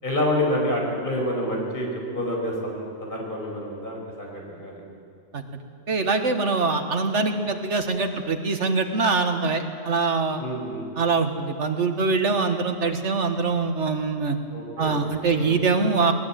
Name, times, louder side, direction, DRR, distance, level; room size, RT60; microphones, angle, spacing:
voice 1, 0.0-1.9 2.1-4.8 10.4-10.8 14.5-14.9 15.3-15.5, left 1 dB, 45° left, -1 dB, 5.7 m, -28 dB
voice 2, 5.9-10.4 11.0-14.4 14.8-16.1, right 4 dB, 90° right, 6 dB, 1.9 m, -23 dB
20.5 x 20.0 x 9.1 m, 2.3 s
omnidirectional pair, 1.2 m